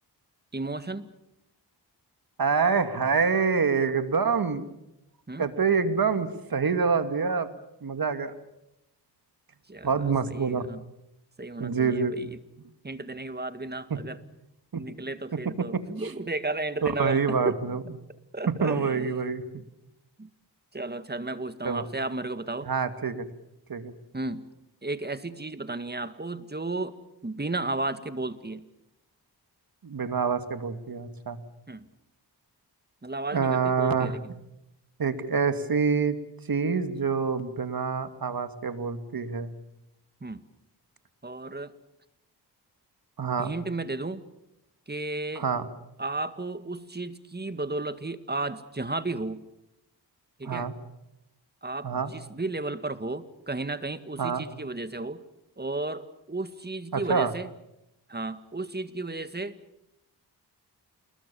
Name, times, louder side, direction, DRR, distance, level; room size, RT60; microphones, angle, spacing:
voice 1, 0.5-1.1 5.3-5.5 9.7-10.8 11.4-12.4 12.8-14.2 14.7-17.6 18.3-19.1 19.5-19.6 20.2-20.3 20.7-22.7 24.1-24.4 24.8-27.0 27.2-28.6 31.7-31.9 33.0-34.3 40.2-40.4 41.2-41.7 43.4-44.2 44.9-45.5 46.0-49.4 50.4-50.7 51.6-55.2 55.6-57.5 58.1-59.6, right 2 dB, 25° right, 12 dB, 1.9 m, -33 dB
voice 2, 2.4-4.6 5.4-7.5 7.8-8.3 9.8-10.7 11.6-12.1 14.7-14.8 15.6-15.8 17.0-17.8 18.5-19.4 21.6-21.9 22.7-23.2 23.7-23.9 29.8-31.4 33.3-34.2 35.0-36.2 36.5-39.5 43.2-43.5 45.4-45.7 50.4-50.7 51.8-52.1 54.2-54.5 56.9-57.3, right 5 dB, 55° right, 10 dB, 2.4 m, -26 dB
28.5 x 21.5 x 7.1 m, 0.84 s
cardioid pair, 65°, 41 cm